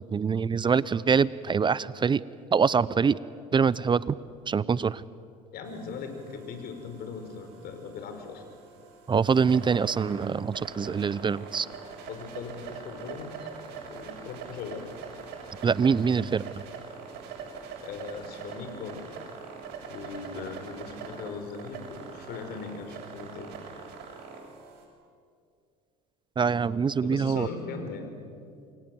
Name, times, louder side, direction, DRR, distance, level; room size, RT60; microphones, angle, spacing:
voice 1, 0.1-2.2 2.5-3.2 3.5-4.2 4.5-5.0 9.1-11.7 15.6-16.5 26.4-27.5, right 6 dB, 25° right, 20 dB, 0.7 m, -24 dB
voice 2, 5.5-8.5 12.1-13.5 13.9-14.9 17.8-19.0 19.9-23.5 27.0-28.1, left 5 dB, 55° left, 6 dB, 5.2 m, -39 dB
sound 1, 5.6-24.8, right 5 dB, 60° right, 7.5 m, -43 dB
28.5 x 23.0 x 7.8 m, 2.4 s
hypercardioid pair, 75°, 19 cm